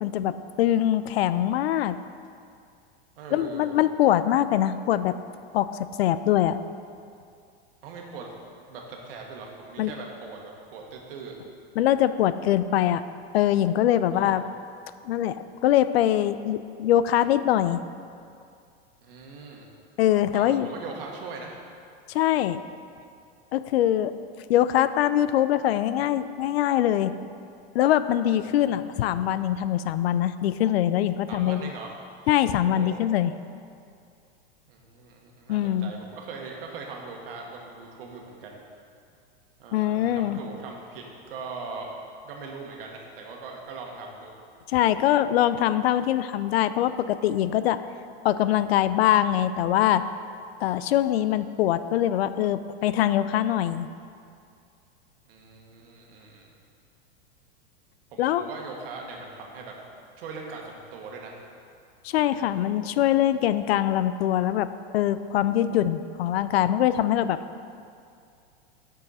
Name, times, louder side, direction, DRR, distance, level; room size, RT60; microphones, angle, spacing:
voice 1, 0.0-2.0 3.3-5.2 5.5-5.7 6.0-6.6 9.8-9.9 11.8-13.0 13.3-14.4 15.1-17.8 20.0-20.7 22.1-22.6 23.5-24.1 24.5-27.1 27.7-31.7 32.3-33.3 35.5-35.9 39.7-40.4 44.7-47.8 48.2-50.0 50.6-53.9 58.2-58.4 62.0-67.4, left 12 dB, 80° left, 13 dB, 0.5 m, -23 dB
voice 2, 3.2-3.7 7.8-8.3 8.7-11.4 14.0-14.3 19.0-19.7 20.3-21.6 28.3-28.5 31.3-32.0 32.6-33.0 34.7-38.6 39.6-41.9 42.2-44.3 55.3-56.5 58.1-59.7 60.2-61.3, right 4 dB, 65° right, 0 dB, 1.5 m, -40 dB
9.0 x 6.5 x 4.1 m, 2.4 s
supercardioid pair, 170°, 31 cm